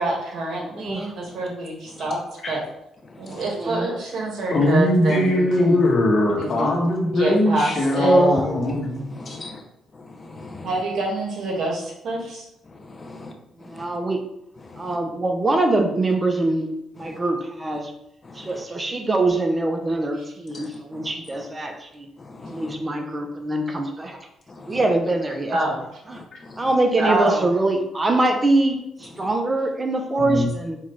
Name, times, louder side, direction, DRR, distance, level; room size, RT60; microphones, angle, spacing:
voice 1, 0.0-2.2 2.5-2.6 3.2-5.9 6.3-6.8 7.1-8.2 10.6-12.2 25.5-25.8 27.0-27.5, right 2 dB, 70° right, -1 dB, 1.4 m, -26 dB
voice 2, 0.7-1.1 3.5-3.9 5.5-5.9 7.9-8.5 13.6-14.2 14.8-16.7 17.0-17.9 18.3-22.1 22.5-24.2 24.7-25.6 26.1-26.2 26.6-30.8, right 2 dB, 25° right, 4 dB, 0.6 m, -23 dB
voice 3, 4.5-9.4 30.2-30.5, left 1 dB, 50° left, 0 dB, 1.0 m, -20 dB
voice 4, 9.1-9.6 10.2-10.7 13.0-13.3 13.8-13.9 14.7-14.9 17.1-17.2 18.3-18.5 20.6-21.1 22.2-22.7 24.5-24.8 26.4-26.7, left 2 dB, 30° left, 5 dB, 0.5 m, -40 dB
5.5 x 2.4 x 3.2 m, 0.81 s
cardioid pair, 90°, 0 cm